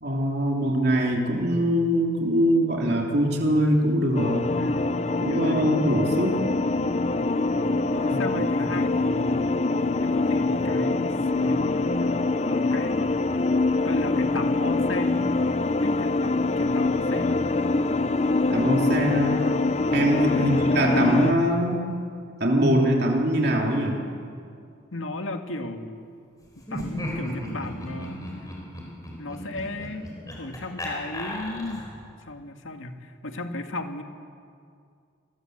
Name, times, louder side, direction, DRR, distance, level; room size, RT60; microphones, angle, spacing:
voice 1, 0.0-4.4 5.2-6.4 8.3-8.4 18.5-19.4 19.9-21.8 22.4-24.0, equal, 55° right, 0 dB, 3.1 m, -22 dB
sound 1, 4.1-21.3, left 3 dB, 35° left, 0.7 m, -24 dB
voice 2, 4.6-5.7 7.9-9.6 10.0-12.2 12.5-13.0 13.8-15.4 15.8-17.5 20.2-20.5 24.9-26.0 26.6-28.4 29.2-31.9 32.3-34.0, left 2 dB, 90° left, 5 dB, 2.1 m, -34 dB
Laughter, 26.6-32.0, left 1 dB, 20° left, 5.1 m, -35 dB
27.0 x 21.0 x 8.0 m, 2.3 s
head